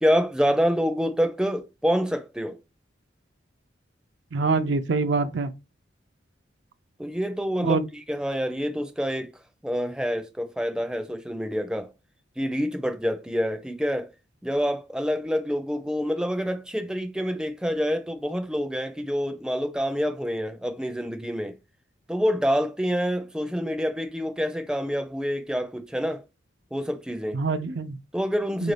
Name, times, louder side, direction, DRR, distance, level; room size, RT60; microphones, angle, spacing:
voice 1, 0.0-2.6 7.0-9.3 9.6-11.9 12.4-14.1 14.4-21.6 22.1-26.2 26.7-27.4 28.1-28.7, equal, 5° right, 0.4 m, -27 dB
voice 2, 4.3-5.5 7.6-7.9 27.3-28.0 28.6-28.7, right 4 dB, 65° right, 0.4 m, -25 dB
4.6 x 2.6 x 3.2 m
head